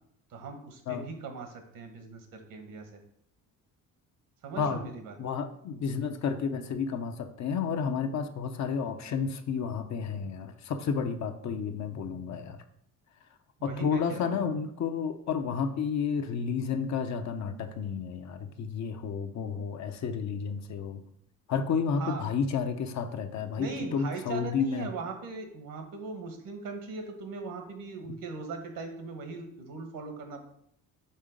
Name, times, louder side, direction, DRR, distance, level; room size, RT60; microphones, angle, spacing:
voice 1, 0.3-3.0 4.4-5.1 13.6-14.3 22.0-22.3 23.6-30.4, right 4 dB, 70° right, 6 dB, 1.3 m, -39 dB
voice 2, 5.2-12.6 13.6-21.0 21.5-24.9, left 6 dB, 55° left, 7 dB, 0.7 m, -31 dB
5.5 x 3.6 x 5.1 m, 0.71 s
cardioid pair, 85°, 34 cm